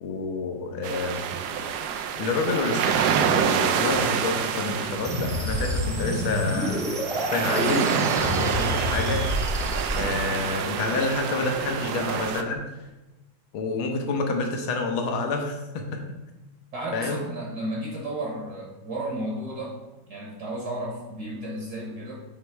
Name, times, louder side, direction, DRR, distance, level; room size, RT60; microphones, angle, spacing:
voice 1, 0.0-1.2 2.2-2.9 3.3-9.4 10.0-12.6 13.5-16.0 16.9-17.2, left 3 dB, 80° left, 3 dB, 1.7 m, -28 dB
sound 1, 0.8-12.4, right 7 dB, 85° right, 0.9 m, -27 dB
sound 2, 5.0-10.0, left 1 dB, 5° right, 0.5 m, -28 dB
voice 2, 16.7-19.8 20.1-22.2, right 1 dB, 55° right, -1 dB, 1.5 m, -33 dB
7.9 x 3.1 x 4.5 m, 1.1 s
omnidirectional pair, 2.3 m